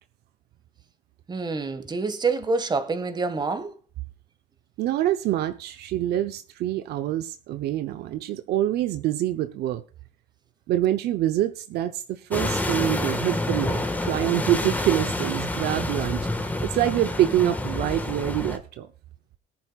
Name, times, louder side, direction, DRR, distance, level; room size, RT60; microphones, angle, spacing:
voice 1, 1.3-3.7, right 4 dB, 25° right, 1.7 m, -27 dB
voice 2, 4.8-9.8 10.7-16.3 16.6-18.9, right 13 dB, 75° right, 0.8 m, -26 dB
sound 1, 12.3-18.6, left 2 dB, 10° left, 1.7 m, -28 dB
18.5 x 10.5 x 2.4 m
cardioid pair, 110°, 17 cm